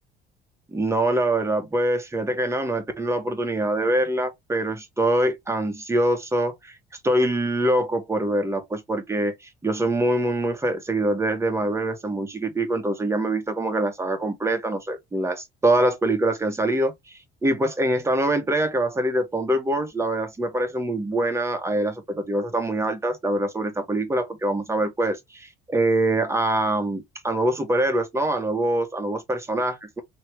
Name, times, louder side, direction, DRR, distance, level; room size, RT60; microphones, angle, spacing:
voice 1, 0.7-6.7 7.0-9.3 9.6-16.9 17.4-30.0, right 1 dB, 15° right, 1.4 m, -24 dB
3.1 x 3.1 x 4.6 m
cardioid pair, 95°, 18 cm